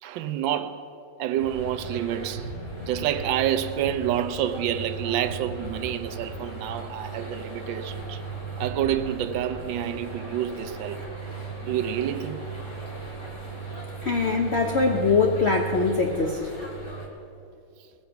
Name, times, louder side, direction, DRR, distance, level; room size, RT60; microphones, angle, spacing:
voice 1, 0.0-0.9 1.2-2.5 2.9-8.2 8.6-11.2 11.6-12.4, right 10 dB, 80° right, 1.3 m, -28 dB
sound 1, 1.4-17.1, right 3 dB, 15° left, 2.0 m, -37 dB
voice 2, 14.0-16.5, left 4 dB, 60° left, 0.6 m, -22 dB
19.5 x 7.2 x 5.7 m
omnidirectional pair, 2.1 m